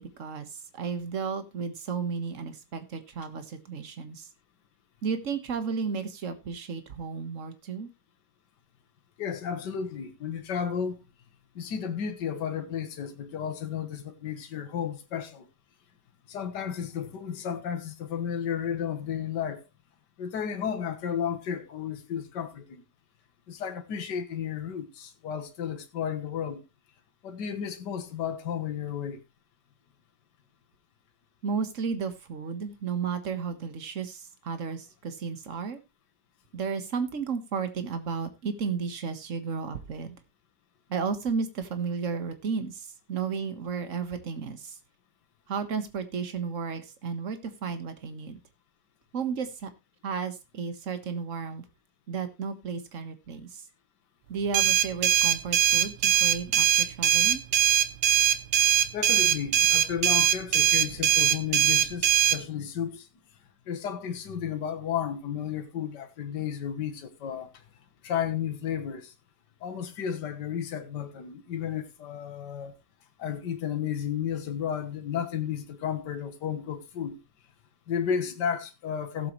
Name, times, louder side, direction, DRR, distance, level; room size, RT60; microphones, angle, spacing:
voice 1, 0.0-4.3 5.0-7.9 31.4-35.8 36.5-40.2 40.9-44.8 45.5-48.4 49.1-49.7 50.0-51.6 52.1-53.6 54.3-57.4, right 5 dB, 45° right, 1.7 m, -33 dB
voice 2, 9.2-11.0 11.6-15.5 16.3-19.7 20.2-22.8 23.5-26.6 27.2-29.2 58.9-63.1 63.7-67.6 68.0-69.1 69.6-72.8 73.2-77.2 77.9-79.3, left 8 dB, 65° left, 1.9 m, -33 dB
sound 1, 54.5-62.4, right 10 dB, 75° right, 1.5 m, -22 dB
16.5 x 7.7 x 3.1 m
omnidirectional pair, 2.0 m